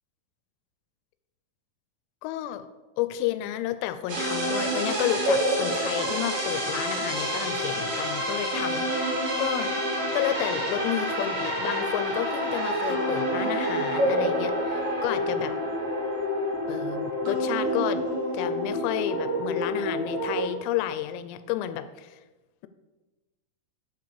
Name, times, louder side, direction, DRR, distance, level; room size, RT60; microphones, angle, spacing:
voice 1, 2.2-2.7 3.0-9.7 10.1-15.5 16.7-18.0 18.3-22.2, left 12 dB, 90° left, 11 dB, 3.2 m, -31 dB
sound 1, 4.1-20.5, equal, 45° right, 2.2 m, -28 dB
8.1 x 4.8 x 6.8 m, 1.2 s
omnidirectional pair, 5.8 m